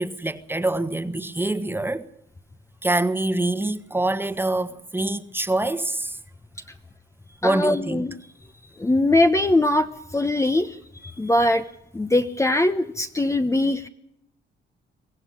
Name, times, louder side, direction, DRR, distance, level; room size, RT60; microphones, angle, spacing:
voice 1, 0.0-2.1 2.8-6.2 7.4-8.0, right 2 dB, 10° right, 1.4 m, -25 dB
voice 2, 7.4-8.2 8.8-11.7 11.9-13.9, left 1 dB, 15° left, 1.0 m, -21 dB
24.0 x 15.5 x 9.7 m
cardioid pair, 90°, 20 cm